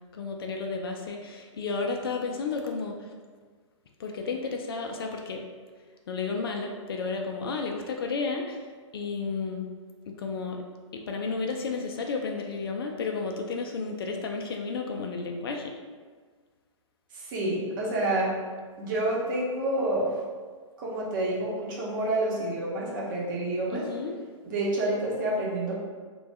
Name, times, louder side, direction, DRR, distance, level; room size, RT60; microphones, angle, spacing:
voice 1, 0.1-3.0 4.0-5.4 6.1-8.6 8.9-9.7 10.1-10.6 10.9-15.7 23.7-24.1, left 4 dB, 50° left, 3 dB, 0.4 m, -32 dB
voice 2, 17.1-18.3 18.8-20.1 20.8-23.9 24.4-25.7, right 1 dB, 40° right, -4 dB, 0.9 m, -28 dB
3.3 x 2.3 x 3.2 m, 1.5 s
figure-of-eight pair, 115°, 16 cm